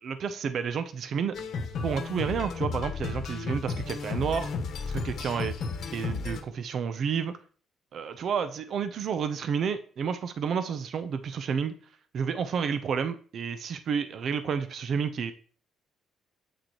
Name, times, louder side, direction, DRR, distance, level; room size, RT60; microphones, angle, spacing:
voice 1, 0.0-1.4 1.8-4.5 4.9-5.5 5.9-7.4 7.9-11.7 12.1-15.3, right 6 dB, 60° right, 11 dB, 0.6 m, -30 dB
sound 1, 1.3-6.4, left 4 dB, 70° left, 1.2 m, -33 dB
8.0 x 6.4 x 3.1 m, 0.42 s
cardioid pair, 90°, 0 cm